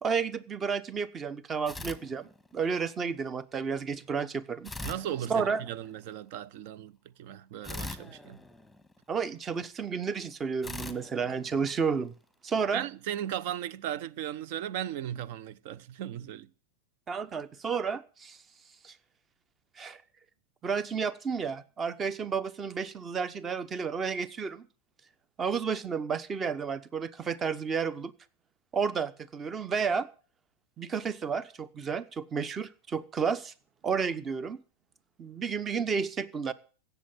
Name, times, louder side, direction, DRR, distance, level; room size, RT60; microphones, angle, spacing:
voice 1, 0.0-4.7 5.3-5.6 9.1-12.1 12.4-12.8 17.1-18.4 18.8-19.0 19.8-20.0 20.6-24.7 25.4-28.1 28.7-30.1 30.8-33.5 33.8-34.6 35.2-36.5, right 6 dB, 25° right, 1.1 m, -31 dB
sound 1, 1.7-2.8 4.6-6.0 7.6-9.3 10.6-12.2, left 2 dB, ahead, 1.5 m, -43 dB
voice 2, 4.8-6.9 7.2-8.4 12.7-16.5, right 11 dB, 55° right, 0.9 m, -36 dB
16.0 x 7.0 x 9.0 m
hypercardioid pair, 100°, 0 cm